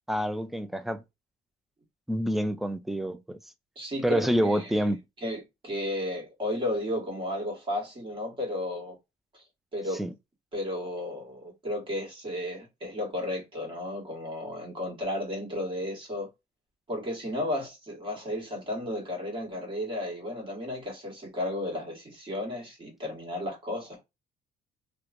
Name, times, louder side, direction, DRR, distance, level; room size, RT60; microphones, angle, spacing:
voice 1, 0.1-1.0 2.1-3.4 4.0-5.0 10.0-10.1, equal, ahead, 0.3 m, -27 dB
voice 2, 3.8-4.9 5.2-9.0 9.3-9.4 9.7-10.0 10.5-16.3 16.9-24.0, left 1 dB, 30° right, 1.4 m, -33 dB
3.0 x 2.1 x 2.5 m
cardioid pair, 110°, 17 cm